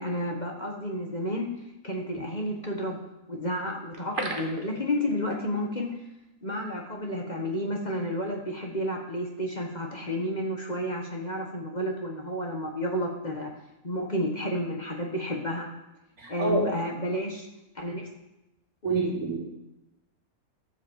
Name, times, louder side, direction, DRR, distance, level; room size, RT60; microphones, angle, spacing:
voice 1, 0.0-1.5 1.8-3.0 3.3-5.9 6.4-13.5 13.8-15.7 16.3-17.5 17.7-18.1 18.8-19.1, equal, 30° left, 0 dB, 1.5 m, -31 dB
sound 1, 3.9-5.6 5.9-6.0 6.4-6.6, right 2 dB, 35° right, 1.4 m, -35 dB
voice 2, 16.2-16.7 18.8-19.4, right 2 dB, 75° right, -5 dB, 3.9 m, -27 dB
12.5 x 5.8 x 7.4 m, 0.93 s
omnidirectional pair, 1.6 m